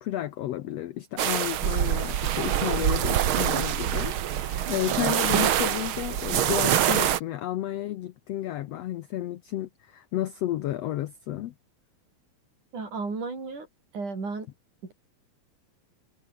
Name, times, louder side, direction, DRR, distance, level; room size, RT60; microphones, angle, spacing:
voice 1, 0.0-11.5, left 13 dB, 80° left, 1.4 m, -32 dB
sound 1, 1.2-7.2, right 11 dB, 80° right, 1.1 m, -25 dB
voice 2, 12.7-13.7 13.9-14.5 14.8-14.9, right 4 dB, 60° right, 8.1 m, -33 dB
omnidirectional pair, 4.0 m